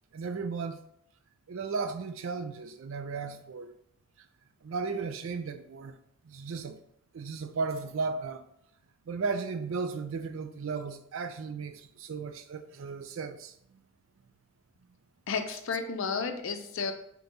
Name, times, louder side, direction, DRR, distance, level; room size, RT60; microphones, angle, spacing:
voice 1, 0.1-0.8 1.5-3.7 4.6-5.9 6.2-6.8 7.1-8.4 9.1-13.8, right 4 dB, 65° right, 0.4 m, -35 dB
voice 2, 15.3-16.9, left 5 dB, 65° left, 0.5 m, -32 dB
3.6 x 3.0 x 4.0 m
head